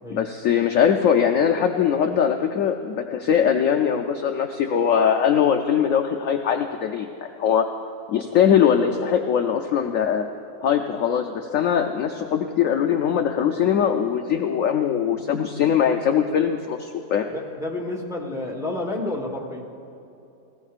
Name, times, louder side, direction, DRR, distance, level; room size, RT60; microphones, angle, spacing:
voice 1, 0.1-7.7 8.1-10.3 10.6-17.3, left 8 dB, 75° left, 4 dB, 0.7 m, -21 dB
voice 2, 17.3-19.7, left 2 dB, ahead, -1 dB, 1.0 m, -30 dB
18.5 x 16.0 x 2.5 m, 2.8 s
omnidirectional pair, 2.0 m